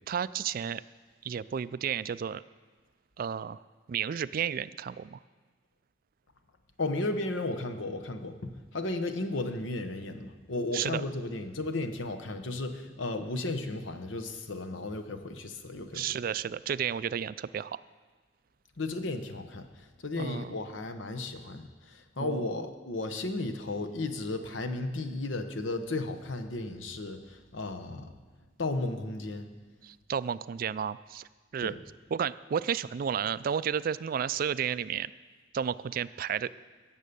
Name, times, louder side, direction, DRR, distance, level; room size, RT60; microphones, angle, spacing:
voice 1, 0.1-0.8 1.2-2.4 3.2-3.6 3.9-5.2 10.7-11.0 15.9-17.8 20.2-20.5 22.2-22.5 29.8-31.3 31.5-31.7 32.1-35.1 35.5-36.5, right 8 dB, 50° right, 17 dB, 0.3 m, -32 dB
voice 2, 6.8-16.0 18.8-28.1 28.6-29.5 31.6-31.8, left 2 dB, 80° left, 8 dB, 1.1 m, -34 dB
16.5 x 7.4 x 6.9 m, 1.4 s
head